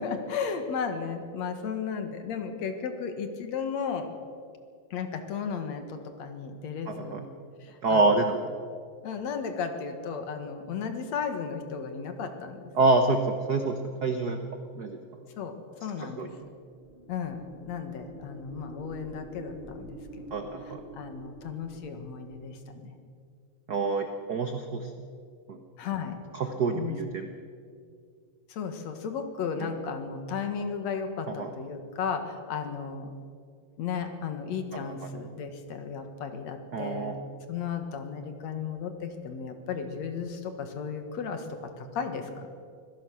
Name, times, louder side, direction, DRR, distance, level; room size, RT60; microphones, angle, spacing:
voice 1, 0.0-4.1 4.9-7.3 7.6-8.2 9.0-12.7 15.4-16.4 17.1-22.9 25.8-26.2 26.7-27.0 28.5-33.1 33.8-41.5 41.8-42.5, left 6 dB, 65° left, 7 dB, 2.7 m, -35 dB
voice 2, 6.9-7.3 7.8-8.4 12.8-14.4 14.7-15.0 16.0-16.3 20.3-20.8 23.7-24.9 25.5-25.6 26.3-27.3 29.6-29.7 31.4-31.5 34.7-34.9 36.7-37.1, right 3 dB, 70° right, 6 dB, 0.9 m, -27 dB
sound 1, 16.5-22.5, right 1 dB, 20° right, 5.1 m, -46 dB
25.0 x 16.5 x 6.3 m, 2.2 s
omnidirectional pair, 3.4 m